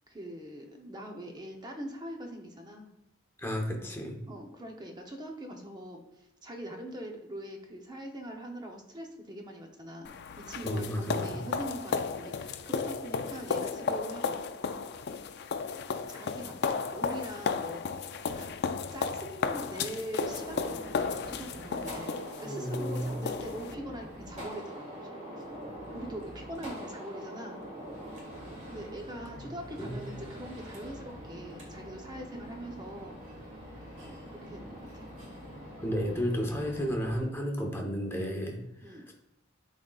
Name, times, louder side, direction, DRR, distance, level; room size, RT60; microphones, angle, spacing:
voice 1, 0.1-2.9 4.3-10.1 10.4-14.4 16.1-22.1 22.4-25.6 25.9-27.7 28.7-33.2 34.0-35.1 38.8-39.0, right 1 dB, 20° right, 2 dB, 0.7 m, -43 dB
voice 2, 3.4-4.2 10.6-11.4 22.4-23.2 29.8-30.1 35.8-39.1, equal, 10° left, 1 dB, 0.9 m, -33 dB
sound 1, 10.0-23.7, left 5 dB, 55° left, 0.4 m, -34 dB
Gunshot gunfire, 20.2-37.2, equal, 35° right, 1.7 m, -44 dB
11.0 x 3.8 x 2.4 m, 0.85 s
head